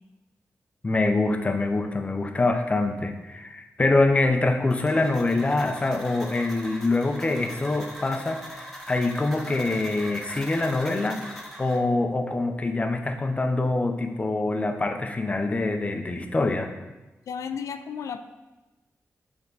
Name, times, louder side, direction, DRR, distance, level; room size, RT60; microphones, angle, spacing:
voice 1, 0.8-16.7, left 2 dB, 25° left, 6 dB, 0.5 m, -25 dB
sound 1, 4.7-11.8, equal, 5° left, 1.2 m, -41 dB
voice 2, 17.3-18.2, left 7 dB, 90° left, 9 dB, 0.3 m, -33 dB
7.5 x 3.5 x 3.9 m, 1.1 s
wide cardioid pair, 105°, 5 cm